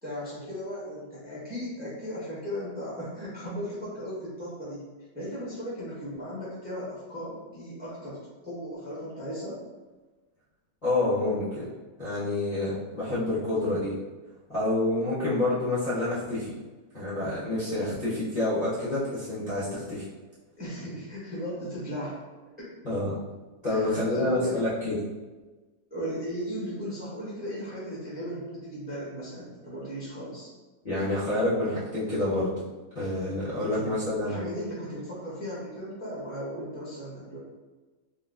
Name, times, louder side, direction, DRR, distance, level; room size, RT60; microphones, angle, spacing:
voice 1, 0.0-9.6 15.2-15.4 20.6-22.2 23.7-24.6 25.9-30.5 33.6-33.9 34.2-37.4, equal, 10° right, -8 dB, 0.6 m, -36 dB
voice 2, 10.8-11.7 12.0-13.9 14.5-16.5 16.9-20.0 22.8-23.2 23.6-25.0 30.8-32.5 32.9-34.5, left 2 dB, 35° left, -12 dB, 0.7 m, -28 dB
3.8 x 2.3 x 2.4 m, 1.3 s
omnidirectional pair, 1.7 m